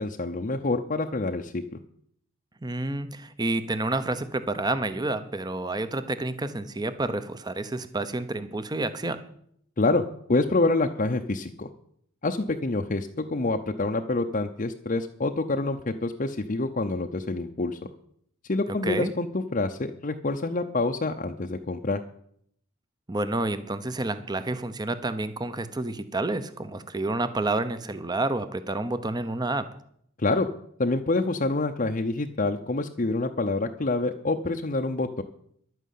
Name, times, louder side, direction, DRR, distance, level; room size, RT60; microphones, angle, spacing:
voice 1, 0.0-1.6 9.8-10.0 10.3-11.7 12.2-17.8 18.5-22.0 30.2-30.5 30.8-35.2, left 2 dB, 35° left, 4 dB, 0.7 m, -27 dB
voice 2, 2.6-9.2 18.8-19.1 23.1-29.7, right 2 dB, 20° right, 12 dB, 0.7 m, -29 dB
11.5 x 9.2 x 8.4 m, 0.67 s
head